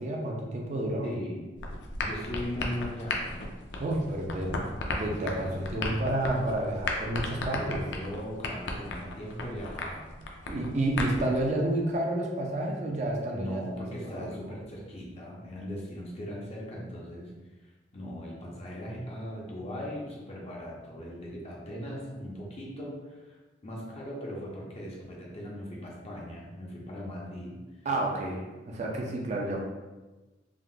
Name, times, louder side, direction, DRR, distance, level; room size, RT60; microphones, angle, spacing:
voice 1, 0.0-1.1 3.8-4.6 5.0-7.8 10.5-14.4 27.9-29.6, right 1 dB, 40° right, 0 dB, 0.4 m, -30 dB
voice 2, 1.0-1.5 2.0-3.4 7.6-10.2 13.3-17.3 17.9-23.4 23.6-27.6, equal, 35° left, -3 dB, 0.6 m, -39 dB
sound 1, 1.6-11.4, left 2 dB, 75° left, 0.4 m, -35 dB
3.6 x 2.4 x 2.4 m, 1.2 s
head